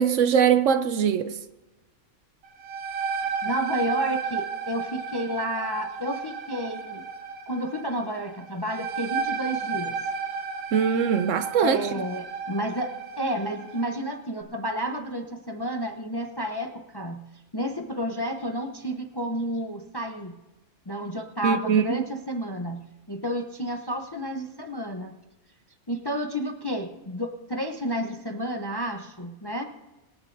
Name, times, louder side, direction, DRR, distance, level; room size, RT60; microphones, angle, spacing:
voice 1, 0.0-1.3 10.7-11.8 21.4-22.0, right 7 dB, 65° right, 0.9 m, -22 dB
sound 1, 2.4-13.9, right 5 dB, 85° right, 1.7 m, -33 dB
voice 2, 3.4-7.0 7.5-9.9 11.6-17.2 17.5-20.4 20.9-22.8 23.1-25.1 25.9-29.7, equal, 25° left, 0.5 m, -31 dB
26.0 x 9.8 x 2.6 m
omnidirectional pair, 1.5 m